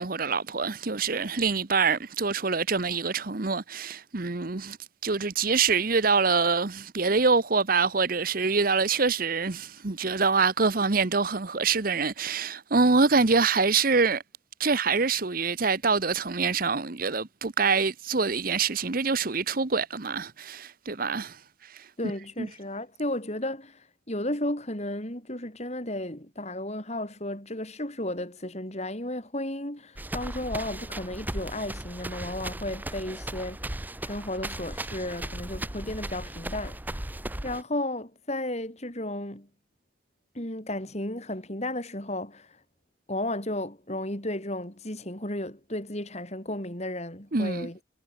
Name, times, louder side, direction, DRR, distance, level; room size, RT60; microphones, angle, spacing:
voice 1, 0.0-4.8 5.0-14.2 14.6-21.9 22.4-22.5 47.3-47.7, right 4 dB, 45° right, 1.0 m, -25 dB
voice 2, 22.0-33.6 34.0-37.0 37.4-39.5 40.3-42.6 43.1-47.8, left 1 dB, 35° left, 4.1 m, -34 dB
sound 1, 30.0-37.6, right 1 dB, 10° right, 0.9 m, -36 dB
head